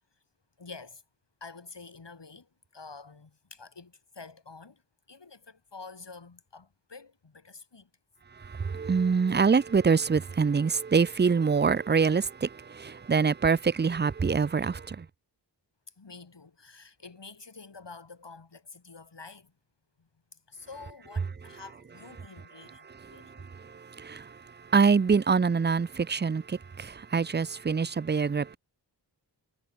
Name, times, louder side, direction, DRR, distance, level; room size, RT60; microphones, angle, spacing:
voice 1, 0.6-1.0 1.4-4.8 5.1-7.9 16.0-19.5 20.0-23.5, left 4 dB, 70° left, 7.3 m, -48 dB
voice 2, 8.4-15.1 23.1-24.4 24.7-28.6, right 5 dB, 25° right, 0.5 m, -25 dB
cardioid pair, 45°, 44 cm